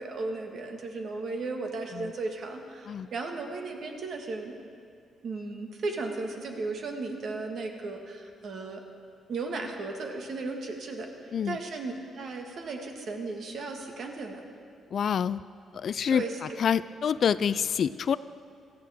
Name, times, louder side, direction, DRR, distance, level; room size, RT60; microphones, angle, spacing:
voice 1, 0.0-4.5 5.2-8.8 9.3-11.1 11.4-14.4 16.1-16.3, right 3 dB, 60° right, 3 dB, 1.7 m, -35 dB
voice 2, 14.9-15.4 15.7-16.2 16.6-18.2, left 7 dB, 55° left, 16 dB, 0.3 m, -27 dB
17.5 x 13.5 x 3.6 m, 2.3 s
cardioid pair, 95°, 0 cm